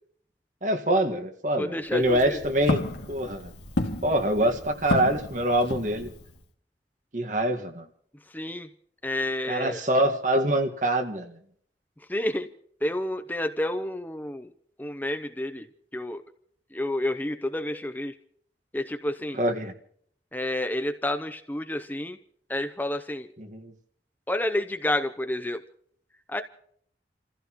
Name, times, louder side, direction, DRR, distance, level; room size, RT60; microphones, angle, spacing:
voice 1, 0.6-2.8 3.1-3.5 4.0-6.1 7.1-7.9 9.5-11.4 19.4-19.7 23.4-23.7, right 1 dB, 45° right, 5 dB, 1.7 m, -25 dB
voice 2, 1.6-2.4 8.3-8.7 9.0-9.8 12.1-12.5 12.8-14.5 14.8-15.7 15.9-16.2 16.7-18.2 18.7-19.4 20.3-22.2 22.5-23.3 24.3-25.6 26.3-26.4, left 1 dB, 10° left, 7 dB, 0.7 m, -29 dB
Walk footsteps, 1.8-6.4, left 1 dB, 80° left, 2.3 m, -32 dB
29.5 x 15.0 x 3.0 m, 0.63 s
head